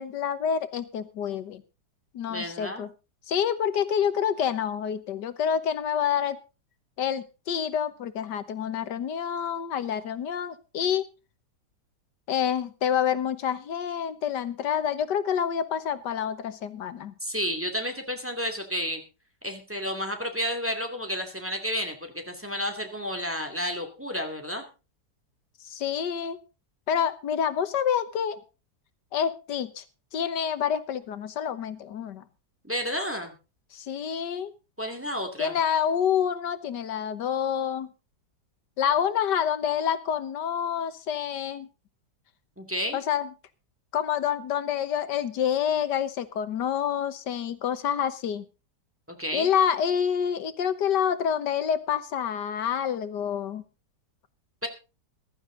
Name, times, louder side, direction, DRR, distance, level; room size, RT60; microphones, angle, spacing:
voice 1, 0.0-1.6 2.1-2.9 3.3-6.4 7.0-11.1 12.3-17.1 25.6-26.4 26.9-28.4 29.1-29.8 30.1-32.2 33.7-34.5 35.4-37.9 38.8-41.7 42.9-43.3 43.9-48.5 49.3-53.6, left 8 dB, 90° left, 13 dB, 1.7 m, -27 dB
voice 2, 2.3-2.9 17.2-19.0 19.4-24.6 32.6-33.3 34.8-35.6 42.6-43.0 49.1-49.5 54.6-54.7, equal, 5° right, 4 dB, 2.3 m, -31 dB
15.0 x 13.5 x 3.9 m, 0.31 s
omnidirectional pair, 1.8 m